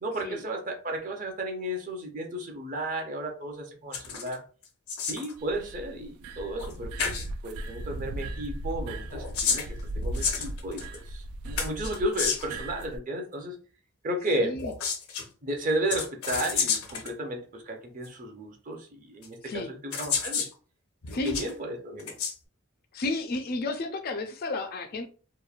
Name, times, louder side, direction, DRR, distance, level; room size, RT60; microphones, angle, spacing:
voice 1, 0.0-4.4 5.0-7.1 7.4-9.6 9.9-13.6 14.0-14.6 15.4-20.5 21.2-22.1, right 1 dB, 35° right, 2 dB, 0.6 m, -33 dB
sound 1, 3.9-4.4 4.6-5.3 6.6-6.7 7.0-7.3 9.0-11.0 11.6-12.6 14.5-15.3 15.9-17.1 18.0-18.1 19.2-19.3 19.9-20.5 21.0-21.5 22.0-22.3, left 6 dB, 80° left, 0.7 m, -30 dB
sound 2, 5.4-13.0, right 1 dB, 85° right, 0.3 m, -37 dB
voice 2, 14.4-14.7 19.4-19.7 21.1-21.3 22.9-25.1, left 3 dB, 45° left, 6 dB, 0.3 m, -32 dB
3.0 x 2.1 x 2.3 m, 0.39 s
head